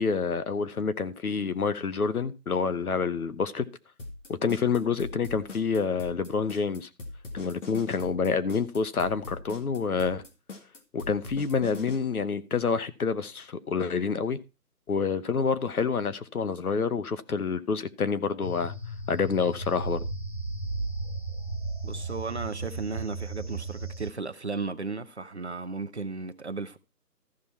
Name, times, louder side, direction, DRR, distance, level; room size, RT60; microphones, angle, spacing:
voice 1, 0.0-3.7 4.3-6.9 7.3-10.2 10.9-14.4 14.9-18.7 19.1-20.0, left 5 dB, 65° left, 1.0 m, -28 dB
sound 1, 4.0-12.0, left 3 dB, 50° left, 1.8 m, -41 dB
sound 2, 18.4-24.1, right 2 dB, 30° left, 0.7 m, -35 dB
voice 2, 21.8-26.8, right 3 dB, 45° right, 0.6 m, -35 dB
14.0 x 5.7 x 4.4 m
hypercardioid pair, 175°, 48 cm